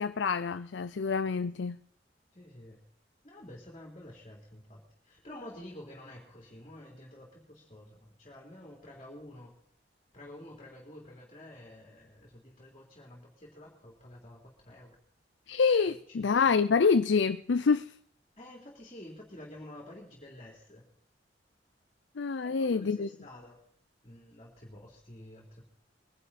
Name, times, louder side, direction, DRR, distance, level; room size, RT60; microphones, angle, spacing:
voice 1, 0.0-1.8 15.5-17.9 22.2-23.1, left 5 dB, 80° left, 12 dB, 0.5 m, -26 dB
voice 2, 2.3-2.8 3.2-9.5 10.1-15.0 15.9-16.5 18.4-20.8 22.4-23.6 24.0-25.6, left 1 dB, 35° left, -1 dB, 3.3 m, -50 dB
22.0 x 11.0 x 4.2 m, 0.65 s
head